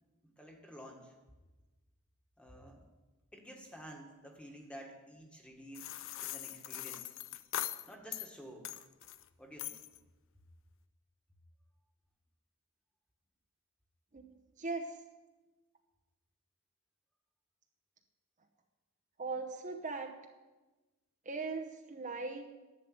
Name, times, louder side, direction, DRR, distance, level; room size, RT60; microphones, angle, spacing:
voice 1, 0.2-1.2 2.4-2.9 3.3-7.1 7.9-8.7 9.4-9.8, equal, 5° left, 1 dB, 1.6 m, -51 dB
sound 1, 5.7-8.3 8.6-9.2 9.6-10.0, left 12 dB, 60° left, 0.5 m, -41 dB
voice 2, 14.6-15.0 19.2-20.1 21.2-22.7, right 3 dB, 35° right, 4 dB, 0.8 m, -39 dB
11.0 x 7.5 x 9.3 m, 1.2 s
head